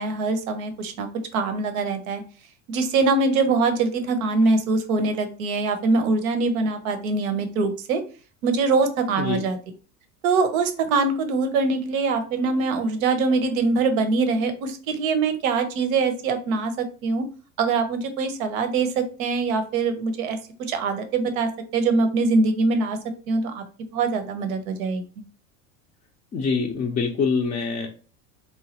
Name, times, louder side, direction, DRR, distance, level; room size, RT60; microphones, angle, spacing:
voice 1, 0.0-2.2 2.7-8.0 8.4-9.6 10.2-17.2 17.6-20.4 20.7-23.0 23.3-23.6 23.9-25.0, right 3 dB, 80° right, 8 dB, 0.7 m, -23 dB
voice 2, 26.3-27.9, left 5 dB, 20° left, 0 dB, 0.3 m, -24 dB
3.0 x 2.2 x 2.8 m, 0.38 s
hypercardioid pair, 100°, 41 cm